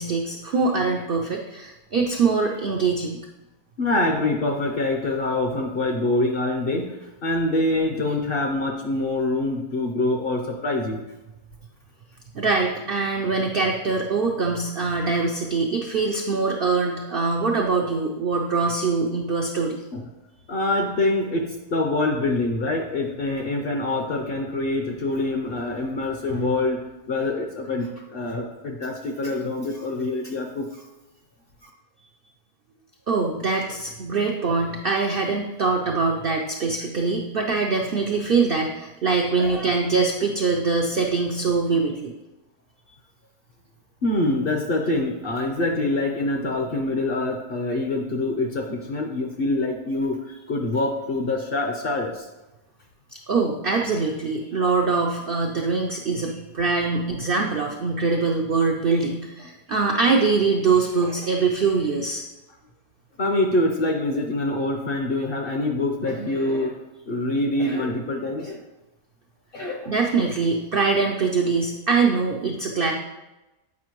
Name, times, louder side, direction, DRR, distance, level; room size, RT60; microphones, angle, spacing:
voice 1, 0.0-3.2 12.3-19.8 33.1-42.1 53.1-62.2 69.9-72.9, right 4 dB, 80° right, 1 dB, 0.5 m, -23 dB
voice 2, 3.8-11.0 19.9-20.1 20.5-26.8 27.1-30.8 31.6-31.7 39.4-39.8 44.0-52.3 63.2-66.8 67.1-68.6 69.5-69.9, left 2 dB, 55° left, 2 dB, 0.6 m, -25 dB
8.5 x 5.0 x 3.0 m, 1.0 s
omnidirectional pair, 1.7 m